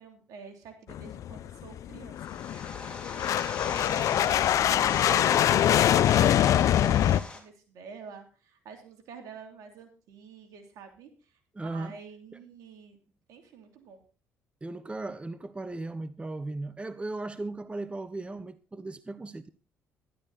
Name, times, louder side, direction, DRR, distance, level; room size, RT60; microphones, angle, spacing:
voice 1, 0.0-2.4 3.7-11.1 11.6-13.0 13.3-14.0, right 5 dB, 70° right, 3.1 m, -47 dB
sound 1, 0.9-7.2, left 11 dB, 65° left, 0.5 m, -24 dB
sound 2, 2.2-7.4, left 3 dB, 15° left, 4.1 m, -39 dB
voice 2, 11.5-11.9 14.6-19.5, right 2 dB, 20° right, 0.8 m, -37 dB
12.0 x 12.0 x 4.2 m
supercardioid pair, 65°, 6 cm